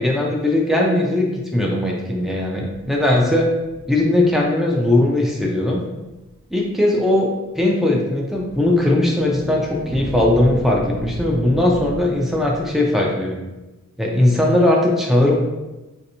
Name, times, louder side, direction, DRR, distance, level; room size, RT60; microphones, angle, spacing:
voice 1, 0.0-3.5 3.9-5.8 6.5-13.4 14.0-15.4, left 1 dB, ahead, -1 dB, 0.4 m, -19 dB
sound 1, 2.6-4.6 5.4-5.5 6.2-6.6 8.3-12.7, right 1 dB, 55° right, 0.5 m, -34 dB
3.2 x 2.8 x 2.7 m, 1.1 s
head